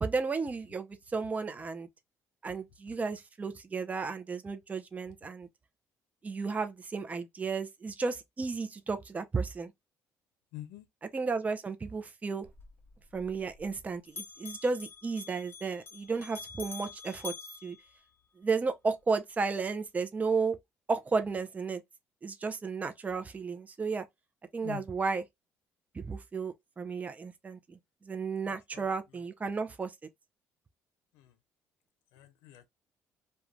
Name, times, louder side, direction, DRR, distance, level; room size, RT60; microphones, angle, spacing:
voice 1, 0.0-1.9 2.4-5.5 6.2-9.7 11.1-12.5 13.1-17.3 17.6-17.8 18.4-20.6 20.9-21.8 22.2-24.1 24.5-25.2 25.9-27.8 28.0-29.9, right 4 dB, 25° right, 0.4 m, -33 dB
voice 2, 10.5-10.9 24.6-24.8 28.5-28.9 31.1-31.3 32.1-32.7, left 13 dB, 90° left, 0.4 m, -46 dB
Bell, 12.4-13.8 14.1-18.5, left 4 dB, 35° left, 0.9 m, -47 dB
2.4 x 2.1 x 3.0 m
supercardioid pair, 80°, 6 cm